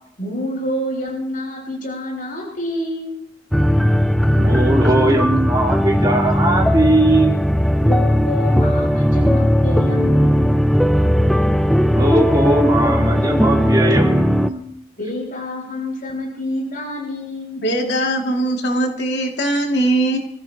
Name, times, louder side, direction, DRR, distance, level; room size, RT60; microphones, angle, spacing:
voice 1, 0.2-3.2 7.8-10.6 15.0-17.6, left 1 dB, 50° left, -3 dB, 7.2 m, -27 dB
sound 1, 3.5-14.5, equal, ahead, 0.6 m, -17 dB
voice 2, 4.3-7.3 11.9-14.6, right 1 dB, 25° right, -2 dB, 3.7 m, -19 dB
voice 3, 17.6-20.2, right 1 dB, 70° left, 1 dB, 2.7 m, -20 dB
28.0 x 16.0 x 3.0 m, 0.67 s
head